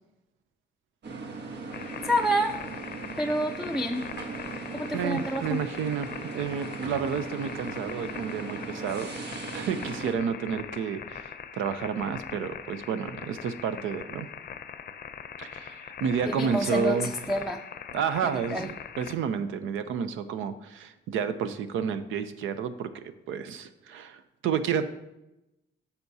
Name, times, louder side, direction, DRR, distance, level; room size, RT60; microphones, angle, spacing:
sound 1, 1.0-10.1, right 4 dB, 60° right, 1.2 m, -39 dB
sound 2, 1.7-19.1, left 8 dB, 50° left, 0.6 m, -42 dB
voice 1, 2.0-2.6 3.2-4.0 4.7-5.6 16.2-17.6 18.2-18.7, equal, ahead, 5 dB, 0.4 m, -28 dB
voice 2, 4.9-14.3 15.4-17.1 17.9-24.9, right 7 dB, 80° right, 11 dB, 0.6 m, -31 dB
10.0 x 6.9 x 2.7 m, 0.93 s
cardioid pair, 90°, 20 cm